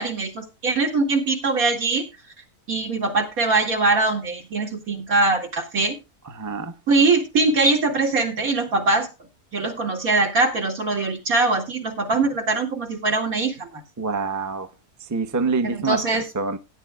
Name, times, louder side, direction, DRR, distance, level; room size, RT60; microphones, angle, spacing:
voice 1, 0.0-2.0 2.7-6.0 6.9-9.1 9.5-13.8 15.6-16.3, right 3 dB, 70° right, 2.6 m, -22 dB
voice 2, 6.4-6.7 14.0-14.7 15.1-16.6, right 4 dB, 20° right, 0.6 m, -26 dB
17.5 x 9.9 x 2.3 m
omnidirectional pair, 1.6 m